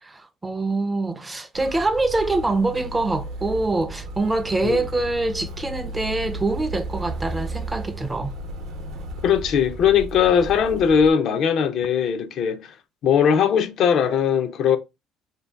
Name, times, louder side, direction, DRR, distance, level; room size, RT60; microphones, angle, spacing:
voice 1, 0.0-8.3, right 2 dB, 15° right, 0.4 m, -25 dB
Motor vehicle (road), 1.5-11.1, right 2 dB, 70° right, 0.6 m, -34 dB
voice 2, 9.2-12.7 13.0-14.8, left 7 dB, 60° left, 0.5 m, -20 dB
2.7 x 2.2 x 3.3 m
cardioid pair, 120°, 0 cm